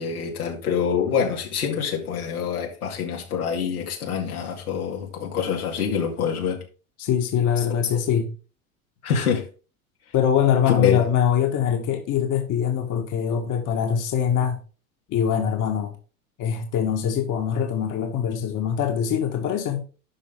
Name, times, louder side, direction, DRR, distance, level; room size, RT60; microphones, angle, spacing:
voice 1, 0.0-6.6 7.7-7.9 9.0-9.5 10.7-11.0, left 7 dB, 85° left, 2.6 m, -25 dB
voice 2, 7.0-8.3 10.1-14.6 15.1-16.0 16.4-19.8, left 8 dB, 45° left, 1.9 m, -23 dB
11.5 x 5.4 x 3.7 m
hypercardioid pair, 85°, 43 cm